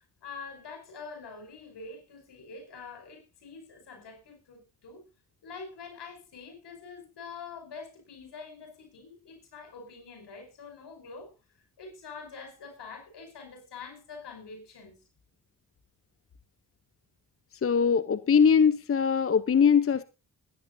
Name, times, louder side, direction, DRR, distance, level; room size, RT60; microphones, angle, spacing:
voice 1, 0.0-5.0 5.4-11.3 11.8-15.0, left 4 dB, 75° left, 5.4 m, -45 dB
voice 2, 17.6-20.0, left 6 dB, 35° left, 0.7 m, -22 dB
22.0 x 10.5 x 2.7 m
supercardioid pair, 45°, 42 cm